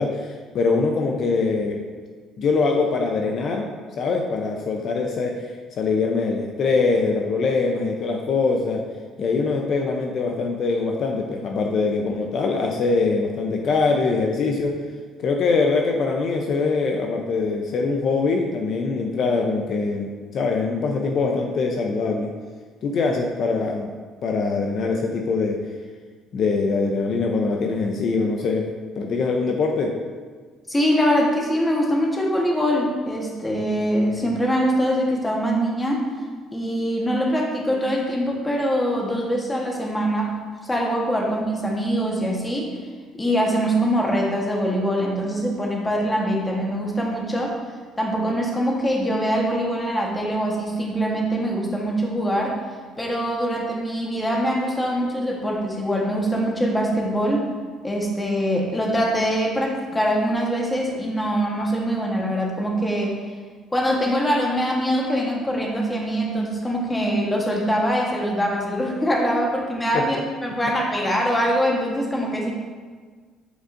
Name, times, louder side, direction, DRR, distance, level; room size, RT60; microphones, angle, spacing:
voice 1, 0.0-1.8 2.4-3.6 4.0-5.3 5.8-8.8 9.2-14.8 15.2-22.3 22.8-23.9 24.2-25.6 26.3-28.7 29.0-29.9 69.9-70.0, left 4 dB, 55° left, 1 dB, 0.6 m, -23 dB
voice 2, 30.7-36.0 36.5-40.3 40.6-42.7 43.2-47.6 48.0-52.6 53.0-57.5 57.8-63.2 63.7-70.2 70.4-72.5, equal, 15° left, -1 dB, 1.2 m, -23 dB
8.0 x 4.8 x 2.6 m, 1.6 s
cardioid pair, 110°, 0 cm